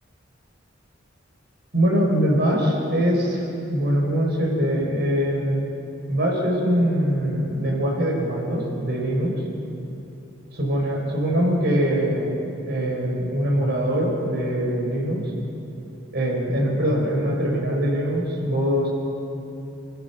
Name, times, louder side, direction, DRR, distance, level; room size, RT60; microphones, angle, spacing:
voice 1, 1.7-5.7 6.1-9.3 10.5-12.4 12.6-15.3 16.1-18.9, equal, 60° right, 0 dB, 5.3 m, -23 dB
30.0 x 15.5 x 6.1 m, 2.8 s
head